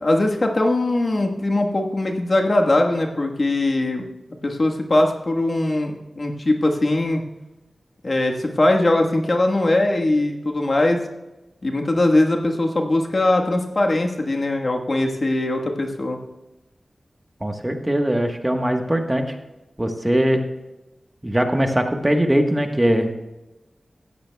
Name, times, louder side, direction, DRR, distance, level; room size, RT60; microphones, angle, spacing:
voice 1, 0.0-4.0 4.4-7.2 8.0-11.0 11.6-16.2, left 2 dB, 50° left, 2 dB, 1.4 m, -20 dB
voice 2, 17.4-19.4 19.8-20.4 21.2-23.1, right 1 dB, 20° right, 4 dB, 1.3 m, -21 dB
15.5 x 13.5 x 2.3 m, 1.0 s
cardioid pair, 50°, 0 cm